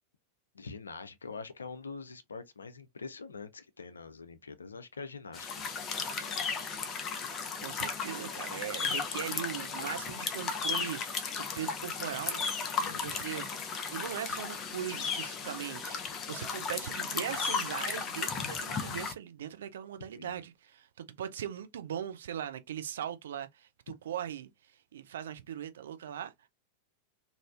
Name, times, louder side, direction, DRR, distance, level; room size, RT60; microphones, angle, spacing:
voice 1, 0.5-5.6 12.8-13.2 20.1-20.4, left 4 dB, 75° left, 0.4 m, -44 dB
sound 1, 5.3-19.1, left 5 dB, 30° left, 0.6 m, -35 dB
voice 2, 7.6-11.0 11.4-12.5 12.9-13.5 13.9-24.5 24.9-26.3, right 10 dB, 60° right, 0.4 m, -39 dB
3.2 x 2.5 x 2.4 m
figure-of-eight pair, 90°, 0 cm